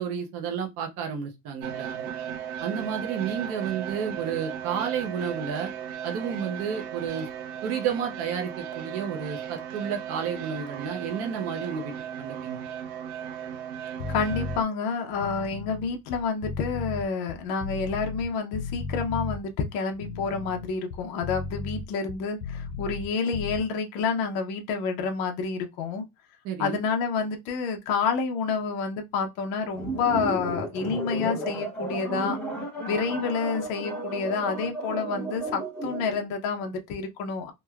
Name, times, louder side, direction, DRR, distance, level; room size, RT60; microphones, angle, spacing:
voice 1, 0.0-2.1 2.6-5.7 6.0-7.3 7.6-12.6 26.4-26.8, right 7 dB, 35° right, 0.4 m, -31 dB
sound 1, 1.6-14.6, right 9 dB, 80° right, 0.7 m, -36 dB
sound 2, 14.0-14.6 15.1-18.3 18.5-19.4 19.9-23.1 23.3-23.6, left 5 dB, 90° left, 0.6 m, -35 dB
voice 2, 14.1-26.0 26.6-32.4 32.9-37.5, left 5 dB, 50° left, 0.6 m, -29 dB
sound 3, 29.7-36.2, right 2 dB, ahead, 0.7 m, -33 dB
3.0 x 2.1 x 2.3 m
cardioid pair, 165°, 46 cm